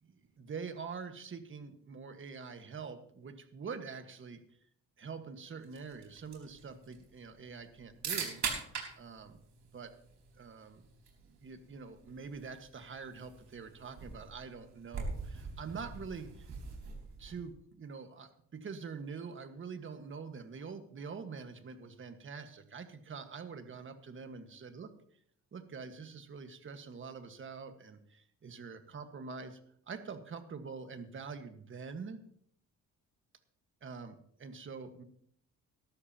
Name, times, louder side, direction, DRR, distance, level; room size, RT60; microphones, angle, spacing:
voice 1, 0.0-4.4 5.0-8.6 9.0-9.4 9.7-9.9 10.3-10.8 11.2-16.5 17.2-24.9 25.5-29.6 29.9-32.2 33.8-35.0, right 5 dB, 40° right, 8 dB, 1.6 m, -45 dB
sound 1, 5.6-17.6, right 5 dB, 65° right, 4.5 m, -44 dB
19.0 x 13.0 x 2.9 m, 0.66 s
cardioid pair, 110°, 31 cm